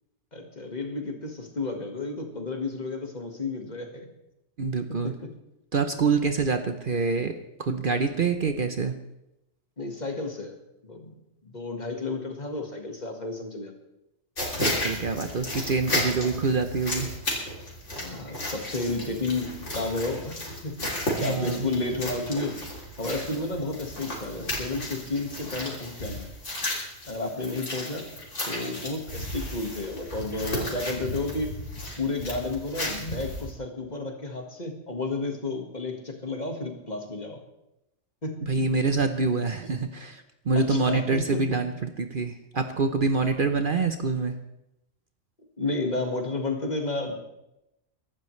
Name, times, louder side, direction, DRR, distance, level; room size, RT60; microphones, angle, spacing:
voice 1, 0.3-4.1 4.9-5.2 9.8-10.6 10.8-11.1 11.4-13.7 18.0-22.6 23.0-26.3 27.1-28.1 28.5-31.6 32.0-37.4 38.2-38.3 40.6-41.6 45.6-47.1, left 2 dB, 35° left, 3 dB, 1.9 m, -32 dB
voice 2, 4.6-5.1 5.7-7.3 7.6-8.9 14.5-17.1 21.2-21.6 38.4-44.3, right 4 dB, 50° right, 7 dB, 0.9 m, -26 dB
sound 1, 14.4-33.5, left 1 dB, 75° left, 3.6 m, -34 dB
23.0 x 12.0 x 3.2 m, 0.88 s
omnidirectional pair, 1.3 m